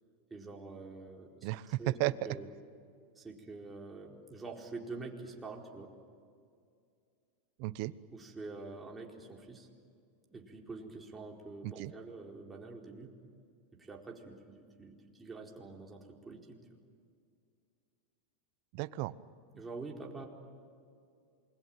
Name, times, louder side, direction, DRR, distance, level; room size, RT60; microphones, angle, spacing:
voice 1, 0.3-1.5 1.8-2.0 2.2-2.5 3.2-5.9 8.1-9.7 10.3-13.1 13.8-16.6 19.5-20.3, right 3 dB, 15° right, 0 dB, 4.4 m, -46 dB
voice 2, 1.4-2.3 7.6-7.9 11.6-11.9 18.7-19.1, right 18 dB, 55° right, 16 dB, 1.0 m, -34 dB
28.0 x 22.0 x 9.3 m, 2.3 s
hypercardioid pair, 115°, 0 cm